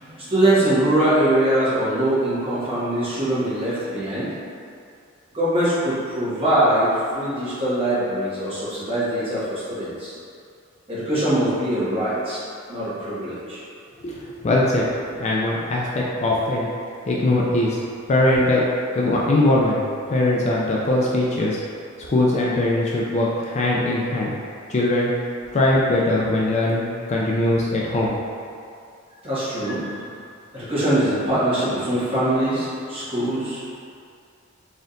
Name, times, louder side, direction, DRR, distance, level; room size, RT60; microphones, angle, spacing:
voice 1, 0.0-4.3 5.3-6.9 7.1-10.1 10.9-12.4 12.7-13.6 29.2-30.0 30.5-33.7, right 1 dB, 25° right, -12 dB, 1.5 m, -22 dB
voice 2, 14.0-16.7 17.1-17.8 18.1-18.6 18.9-19.8 20.1-21.6 22.1-24.4 24.7-25.1 25.5-28.2, left 1 dB, 30° left, -4 dB, 0.4 m, -21 dB
4.2 x 3.7 x 2.5 m, 2.4 s
head